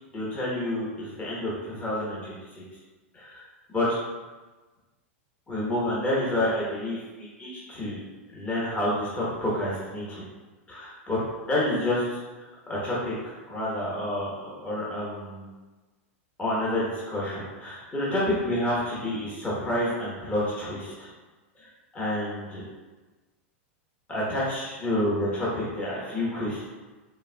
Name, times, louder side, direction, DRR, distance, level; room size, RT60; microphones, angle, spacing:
voice 1, 0.1-2.4 3.1-3.4 3.7-3.9 5.5-8.0 8.3-10.2 10.7-11.2 11.5-12.2 12.7-13.2 13.5-14.3 14.6-15.4 16.4-21.1 21.9-22.6 24.1-26.6, left 1 dB, 20° left, -7 dB, 1.2 m, -29 dB
4.5 x 3.6 x 2.3 m, 1.2 s
hypercardioid pair, 105°, 7 cm